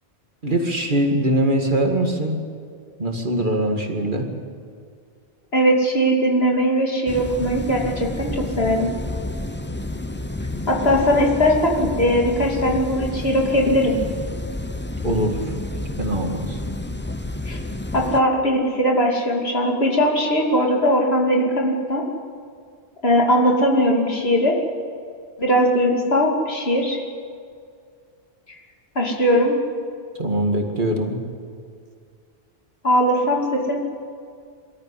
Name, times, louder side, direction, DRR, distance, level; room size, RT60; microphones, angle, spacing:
voice 1, 0.4-2.4 3.0-4.3 15.0-15.4 16.0-16.6 30.2-31.2, right 1 dB, 50° right, 3 dB, 2.3 m, -22 dB
voice 2, 5.5-8.9 10.7-14.0 17.5-17.6 17.9-22.0 23.0-24.6 25.4-27.0 28.9-29.5 32.8-33.8, equal, 70° left, -1 dB, 3.0 m, -19 dB
sound 1, 7.1-18.2, left 1 dB, 10° left, 0.7 m, -30 dB
23.5 x 13.5 x 10.0 m, 2.2 s
omnidirectional pair, 1.1 m